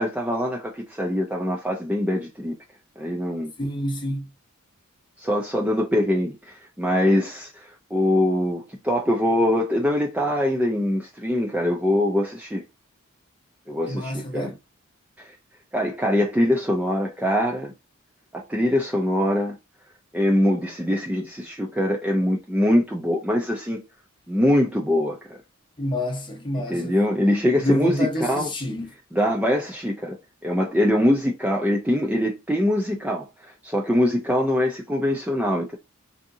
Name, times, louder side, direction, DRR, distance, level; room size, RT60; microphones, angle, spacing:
voice 1, 0.0-2.5 3.0-3.5 5.2-12.6 13.7-14.5 15.2-15.3 15.7-17.7 18.3-19.5 20.1-23.8 24.3-25.4 26.7-28.5 29.1-30.2 30.4-35.8, left 1 dB, 5° right, 0.4 m, -23 dB
voice 2, 3.6-4.3 13.9-14.5 25.8-26.9 27.6-28.9, left 1 dB, 20° left, 0.8 m, -27 dB
3.5 x 2.7 x 2.6 m
head